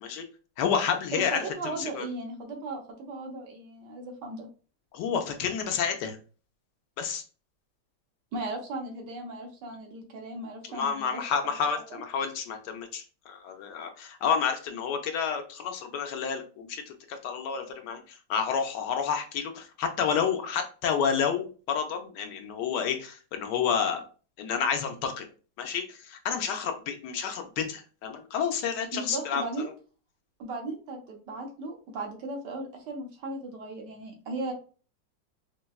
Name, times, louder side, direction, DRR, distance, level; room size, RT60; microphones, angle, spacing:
voice 1, 0.6-2.1 4.9-6.2 7.0-7.2 10.7-16.8 17.1-24.0 24.4-25.3 25.6-29.7, left 7 dB, 75° left, 5 dB, 1.1 m, -30 dB
voice 2, 1.1-4.5 8.3-11.3 11.9-12.0 28.9-29.7 30.4-34.5, right 2 dB, 75° right, 2 dB, 1.4 m, -37 dB
4.5 x 2.1 x 2.3 m, 0.37 s
omnidirectional pair, 2.0 m